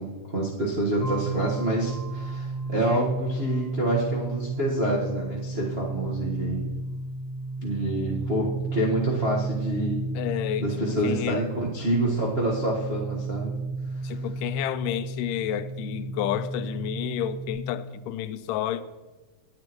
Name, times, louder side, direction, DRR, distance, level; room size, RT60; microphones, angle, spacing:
voice 1, 0.0-6.7 7.6-10.0 10.6-13.6 14.0-14.2, right 1 dB, 65° right, 0.5 m, -27 dB
sound 1, 1.0-17.5, right 3 dB, 30° left, 1.7 m, -33 dB
voice 2, 10.2-10.7 11.0-11.4 14.0-18.8, left 12 dB, 90° left, 2.2 m, -30 dB
19.0 x 8.4 x 3.0 m
omnidirectional pair, 3.7 m